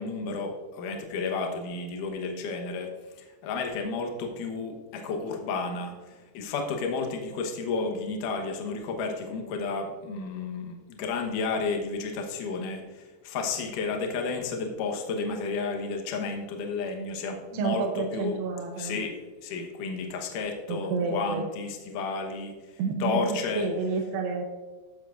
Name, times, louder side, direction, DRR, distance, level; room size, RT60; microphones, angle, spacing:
voice 1, 0.0-2.9 3.2-18.4 18.8-19.1 19.4-22.5 23.0-23.7, left 4 dB, 65° left, 3 dB, 2.2 m, -32 dB
voice 2, 17.5-19.0 20.7-21.5 22.8-24.5, right 4 dB, 80° right, 2 dB, 2.7 m, -30 dB
15.0 x 7.5 x 2.5 m, 1.3 s
omnidirectional pair, 5.0 m